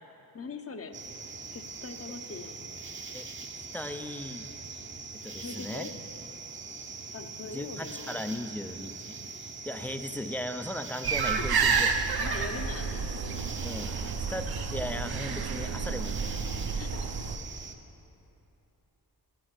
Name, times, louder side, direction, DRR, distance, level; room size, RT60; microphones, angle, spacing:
voice 1, 0.3-1.0 1.5-2.6 5.3-5.9 7.1-8.2 12.2-13.0 16.7-17.0, left 4 dB, 35° left, 7 dB, 0.8 m, -41 dB
sound 1, 0.9-17.7, right 4 dB, 30° right, 0.8 m, -42 dB
voice 2, 3.6-4.5 5.2-5.9 7.5-9.2 9.7-11.9 13.6-14.0 14.3-16.2, left 1 dB, 5° left, 8 dB, 0.5 m, -37 dB
sound 2, 11.0-17.3, right 5 dB, 70° right, 0.9 m, -30 dB
13.5 x 6.4 x 7.8 m, 2.9 s
wide cardioid pair, 105°, 39 cm